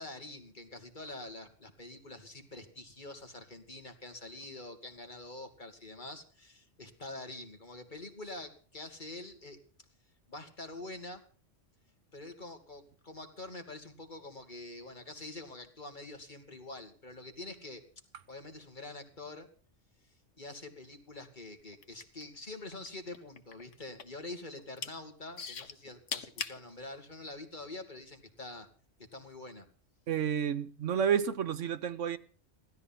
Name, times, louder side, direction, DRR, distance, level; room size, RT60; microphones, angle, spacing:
voice 1, 0.0-9.6 10.3-11.2 12.1-17.8 18.3-19.5 20.4-28.7 29.1-29.7, left 2 dB, 40° left, 2.6 m, -46 dB
sound 1, 21.7-22.9 23.1-24.2 24.6-24.9 25.4-26.6 27.3-27.4, left 6 dB, 80° left, 1.5 m, -39 dB
voice 2, 30.1-32.2, right 8 dB, 85° right, 1.3 m, -30 dB
17.0 x 13.5 x 5.8 m
omnidirectional pair, 1.2 m